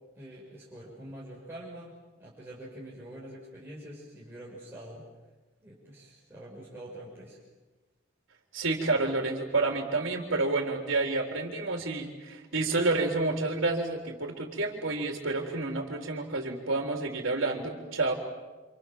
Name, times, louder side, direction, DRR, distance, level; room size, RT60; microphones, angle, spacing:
voice 1, 0.2-5.0 5.6-7.4, right 1 dB, 10° right, -6 dB, 6.3 m, -45 dB
voice 2, 8.5-18.1, right 3 dB, 80° right, 1 dB, 3.9 m, -29 dB
28.5 x 27.5 x 7.5 m, 1.2 s
head